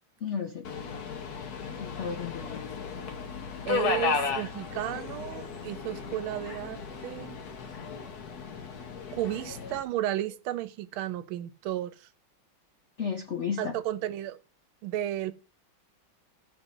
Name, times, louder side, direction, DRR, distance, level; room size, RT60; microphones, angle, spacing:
voice 1, 0.2-0.7 1.8-2.6 13.0-13.7, left 6 dB, 70° left, 0.6 m, -33 dB
Subway metro underground, 0.6-9.8, left 5 dB, 55° left, 1.4 m, -35 dB
voice 2, 3.7-7.4 9.1-12.1 13.6-14.4 14.8-15.3, right 13 dB, 85° right, 1.4 m, -33 dB
15.5 x 5.7 x 2.6 m
omnidirectional pair, 2.2 m